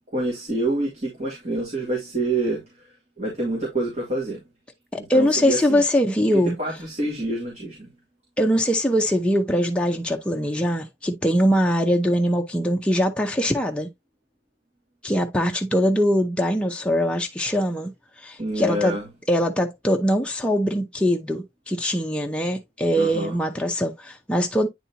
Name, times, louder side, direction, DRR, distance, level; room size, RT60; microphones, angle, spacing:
voice 1, 0.1-2.9 3.2-4.4 5.0-5.8 6.3-7.9 18.4-19.1 22.9-23.3, right 1 dB, 40° right, 2.6 m, -27 dB
voice 2, 4.9-6.5 8.4-13.9 15.0-17.9 18.2-19.0 19.3-24.7, equal, 5° left, 0.6 m, -22 dB
9.2 x 4.2 x 2.7 m
head